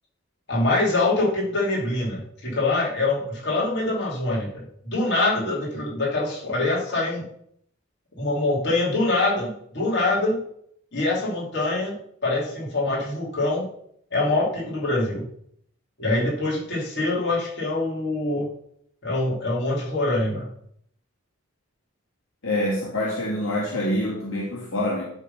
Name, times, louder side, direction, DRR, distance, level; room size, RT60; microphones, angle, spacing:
voice 1, 0.5-7.3 8.2-10.4 10.9-12.0 12.2-13.7 14.1-15.2 16.0-18.5 19.0-20.5, left 2 dB, 50° left, -4 dB, 2.9 m, -24 dB
voice 2, 22.4-25.0, left 1 dB, 70° left, -5 dB, 2.2 m, -26 dB
11.0 x 3.9 x 5.5 m, 0.68 s
head